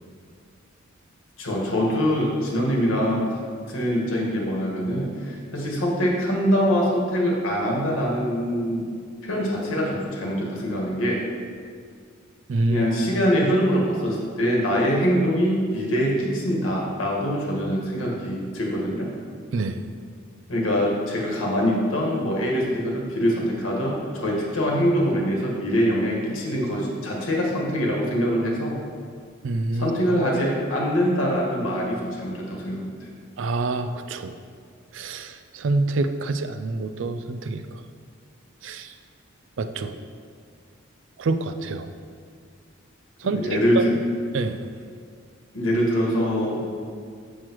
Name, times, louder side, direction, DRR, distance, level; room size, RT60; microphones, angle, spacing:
voice 1, 1.4-3.2 3.7-8.9 9.2-11.2 12.7-19.1 20.5-28.8 29.7-32.9 43.2-43.9 45.5-46.6, equal, 80° left, -3 dB, 1.6 m, -24 dB
voice 2, 12.5-12.8 19.5-19.8 29.4-30.0 33.4-34.3 34.9-37.6 38.6-38.9 39.6-40.0 41.2-41.9 43.2-43.5 43.8-43.9 44.3-44.6, right 3 dB, 65° right, 9 dB, 0.4 m, -26 dB
7.5 x 6.4 x 3.0 m, 2.1 s
head